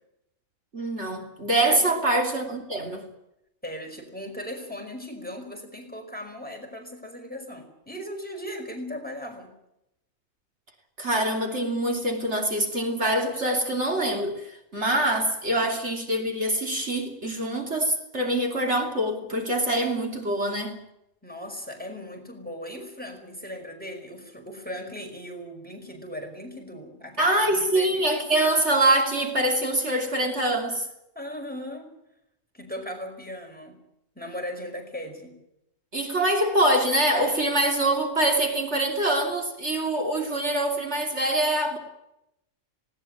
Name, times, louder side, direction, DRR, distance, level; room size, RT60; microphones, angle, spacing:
voice 1, 0.7-3.0 11.0-20.8 27.2-30.9 35.9-41.8, right 1 dB, 55° right, 3.2 m, -24 dB
voice 2, 3.6-9.5 15.6-15.7 21.2-28.0 31.2-31.9 32.5-33.8 34.2-35.4, equal, 5° left, 5.2 m, -38 dB
19.5 x 18.5 x 8.9 m
omnidirectional pair, 1.4 m